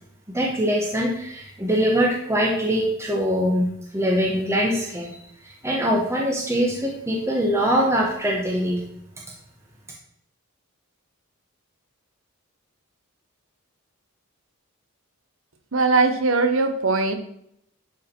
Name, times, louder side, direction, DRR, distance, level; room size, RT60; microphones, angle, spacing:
voice 1, 0.3-5.1 5.4-8.8, equal, 10° right, -1 dB, 1.1 m, -23 dB
voice 2, 15.7-17.2, right 3 dB, 60° right, 7 dB, 1.1 m, -20 dB
10.5 x 4.8 x 4.5 m, 0.73 s
head